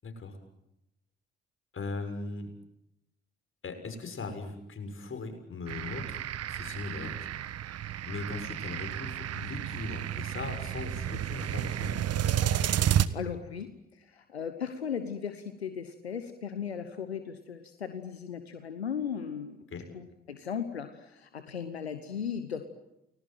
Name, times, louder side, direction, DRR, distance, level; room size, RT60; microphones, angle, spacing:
voice 1, 0.0-0.4 1.7-2.5 3.6-6.2 6.5-7.1 8.0-12.1 19.7-19.8, left 3 dB, 40° left, 7 dB, 6.7 m, -39 dB
sound 1, 5.7-13.1, right 11 dB, 50° right, 1.3 m, -31 dB
voice 2, 12.9-13.7 14.0-19.6 19.9-22.6, left 7 dB, 90° left, 9 dB, 1.2 m, -37 dB
30.0 x 21.0 x 9.2 m, 0.88 s
figure-of-eight pair, 45°, 31 cm